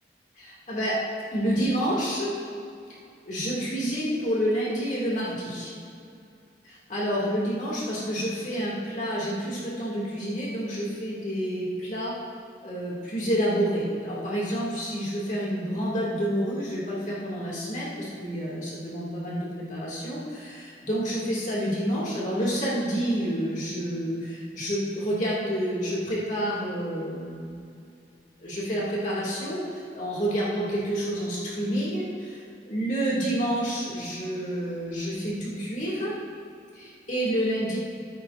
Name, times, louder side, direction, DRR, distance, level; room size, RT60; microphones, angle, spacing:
voice 1, 0.4-0.9 1.3-2.3 3.3-5.7 6.6-12.1 12.6-27.6 28.4-36.1 36.7-37.8, equal, 40° left, -6 dB, 2.0 m, -29 dB
14.5 x 8.9 x 2.5 m, 2.5 s
head